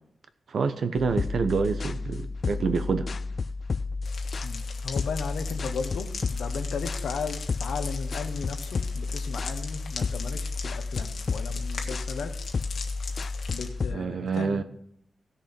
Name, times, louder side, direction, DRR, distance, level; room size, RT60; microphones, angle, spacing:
voice 1, 0.5-3.1 13.9-14.6, right 5 dB, 65° right, 10 dB, 0.9 m, -27 dB
sound 1, 0.9-14.0, left 4 dB, 50° left, 0.3 m, -32 dB
sound 2, 4.0-13.7, left 5 dB, 70° left, 1.5 m, -41 dB
voice 2, 4.4-12.3 13.5-14.6, left 5 dB, 90° left, 7 dB, 1.1 m, -36 dB
16.0 x 6.9 x 4.5 m, 0.72 s
cardioid pair, 95°, 0 cm